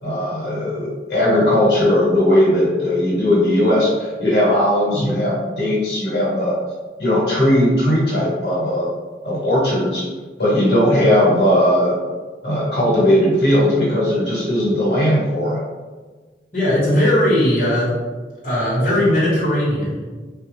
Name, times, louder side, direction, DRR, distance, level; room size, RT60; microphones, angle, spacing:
voice 1, 0.0-6.5 7.0-8.9 9.2-10.0 10.4-12.0 12.4-15.6, left 1 dB, 70° left, -6 dB, 1.2 m, -18 dB
voice 2, 16.5-18.0 18.4-20.1, left 1 dB, 50° left, -9 dB, 1.0 m, -18 dB
3.4 x 2.3 x 3.1 m, 1.4 s
head